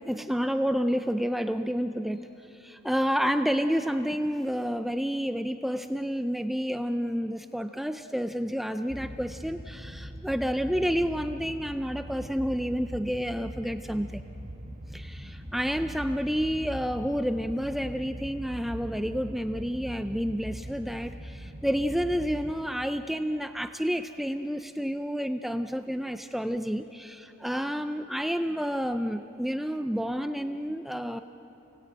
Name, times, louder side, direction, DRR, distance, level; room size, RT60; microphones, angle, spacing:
voice 1, 0.1-2.3 2.6-14.2 14.9-31.2, equal, ahead, 8 dB, 0.5 m, -29 dB
sound 1, 8.9-22.5, equal, 35° right, 1.6 m, -41 dB
29.0 x 19.0 x 9.0 m, 2.9 s
head